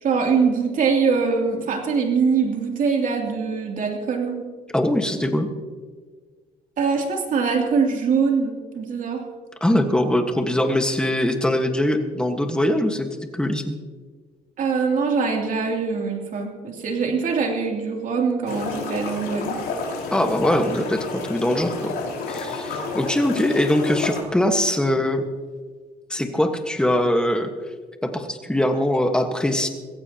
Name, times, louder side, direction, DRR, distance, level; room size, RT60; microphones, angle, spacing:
voice 1, 0.0-4.4 6.8-9.2 14.6-19.6, right 5 dB, 50° right, 1 dB, 3.0 m, -23 dB
voice 2, 4.7-5.5 9.6-13.1 13.3-13.7 20.1-21.9 22.3-25.2 26.1-27.5 28.0-29.7, left 1 dB, 5° left, 5 dB, 1.5 m, -22 dB
sound 1, 18.5-24.2, left 3 dB, 75° left, 4.8 m, -30 dB
23.0 x 15.5 x 2.9 m, 1.5 s
cardioid pair, 110°, 17 cm